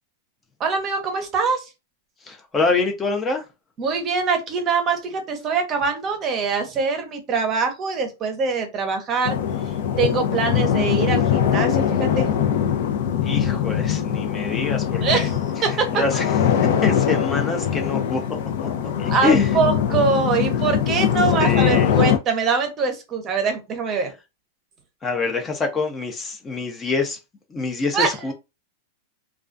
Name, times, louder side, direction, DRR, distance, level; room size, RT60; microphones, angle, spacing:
voice 1, 0.6-1.7 3.8-9.4 10.0-12.5 15.0-15.9 19.1-24.1 27.9-28.3, right 5 dB, 30° right, 0.7 m, -23 dB
voice 2, 2.3-3.4 13.2-15.3 15.9-16.2 16.5-18.2 18.6-18.7 19.0-19.5 21.4-21.9 25.0-27.2 27.5-28.3, left 4 dB, 20° left, 0.5 m, -25 dB
sound 1, 9.2-22.2, left 9 dB, 75° left, 0.5 m, -22 dB
2.3 x 2.2 x 2.5 m
supercardioid pair, 140°, 0 cm